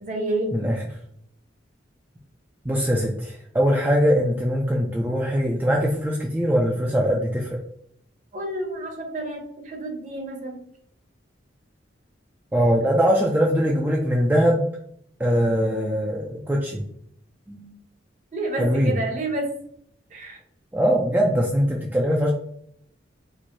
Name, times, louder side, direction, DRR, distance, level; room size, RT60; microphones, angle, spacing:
voice 1, 0.0-0.6 8.3-10.6 18.3-19.5 20.1-20.4, right 2 dB, 40° right, 2 dB, 0.7 m, -29 dB
voice 2, 0.5-0.8 2.6-7.6 12.5-14.7 15.2-16.8 17.5-17.7 18.6-18.9 20.7-22.3, equal, 10° right, -2 dB, 0.3 m, -22 dB
4.4 x 2.0 x 2.5 m, 0.68 s
head